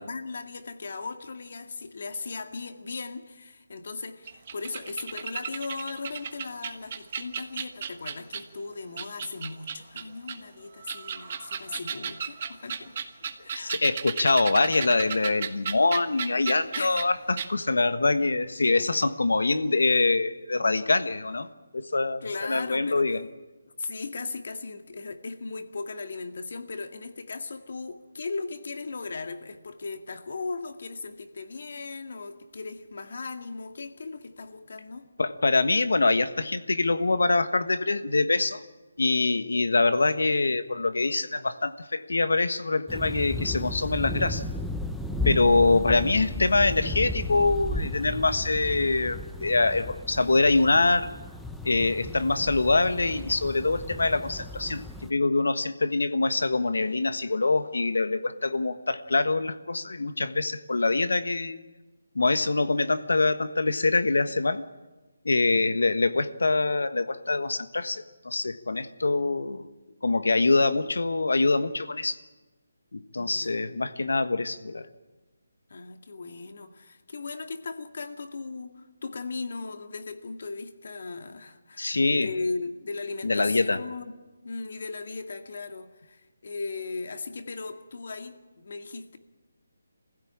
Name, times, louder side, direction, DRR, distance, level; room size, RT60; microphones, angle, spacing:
voice 1, 0.0-12.9 13.4-13.8 16.7-17.1 22.2-23.2 23.8-35.1 65.4-65.8 73.1-73.6 75.7-84.1 84.4-89.2, left 3 dB, 60° left, 6 dB, 2.1 m, -37 dB
sound 1, 4.3-8.6 9.0-10.4 10.8-17.1 17.4-17.5, right 7 dB, 35° right, 1.3 m, -35 dB
voice 2, 13.5-23.3 35.2-38.6 39.0-44.4 45.2-51.1 51.6-61.6 62.1-64.6 65.2-69.6 70.0-72.2 72.9-74.9 81.8-82.3 83.2-83.8, left 3 dB, 85° left, 11 dB, 1.4 m, -24 dB
sound 2, 42.9-55.1, left 2 dB, ahead, 0.7 m, -34 dB
23.0 x 16.0 x 8.8 m, 1.2 s
hypercardioid pair, 165°, 0 cm